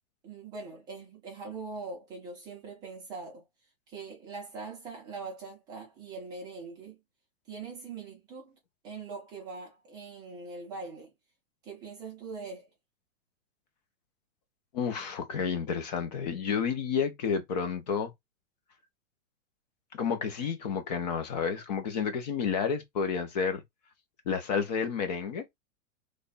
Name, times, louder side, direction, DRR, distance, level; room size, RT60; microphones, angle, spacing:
voice 1, 0.2-3.4 3.9-7.0 7.5-8.6 8.8-11.1 11.6-12.7, right 4 dB, 10° right, 0.5 m, -42 dB
voice 2, 14.7-18.1 19.9-23.6 24.3-25.4, left 6 dB, 30° left, 0.6 m, -30 dB
3.2 x 2.2 x 3.9 m
supercardioid pair, 170°, 40 cm